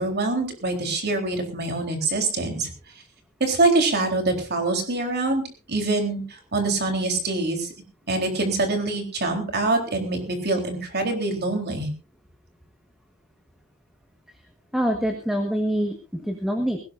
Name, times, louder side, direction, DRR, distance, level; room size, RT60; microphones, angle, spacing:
voice 1, 0.0-2.7 3.4-5.4 5.7-7.7 8.1-11.9, right 2 dB, 45° right, 4 dB, 3.8 m, -24 dB
voice 2, 14.7-16.8, equal, ahead, 4 dB, 1.5 m, -25 dB
19.5 x 17.5 x 2.6 m, 0.33 s
head